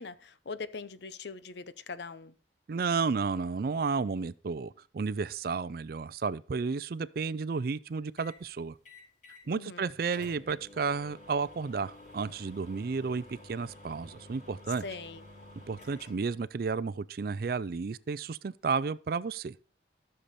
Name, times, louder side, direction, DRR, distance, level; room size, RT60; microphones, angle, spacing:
voice 1, 0.0-2.4 9.5-9.8 14.8-15.2, left 4 dB, 70° left, 0.7 m, -41 dB
voice 2, 2.7-8.7 9.5-14.8 15.7-19.6, right 5 dB, 55° right, 0.4 m, -32 dB
sound 1, 8.2-8.4 8.8-9.5 9.8-9.9 10.1-16.4, left 1 dB, 45° left, 4.7 m, -51 dB
13.5 x 6.8 x 4.2 m
head